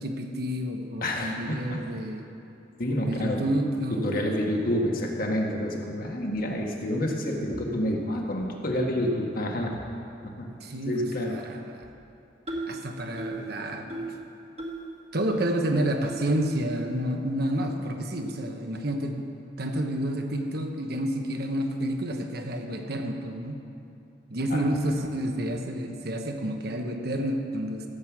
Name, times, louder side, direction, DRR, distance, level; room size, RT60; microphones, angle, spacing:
voice 1, 0.0-2.3 3.0-4.2 10.6-11.6 12.7-14.1 15.1-19.2 19.6-23.6 24.3-27.8, right 1 dB, 60° right, 3 dB, 1.1 m, -29 dB
voice 2, 1.0-1.8 2.8-3.4 3.9-9.8 10.2-10.5 10.9-11.4 24.5-24.6, left 1 dB, 50° left, 0 dB, 1.6 m, -28 dB
sound 1, 12.5-12.8 13.2-13.5 13.9-14.2 14.6-14.9 15.3-15.4 16.0-16.2 16.8-16.9 17.5-17.6 18.3-18.4, right 2 dB, 35° right, 1.6 m, -35 dB
15.0 x 7.7 x 6.0 m, 2.7 s
head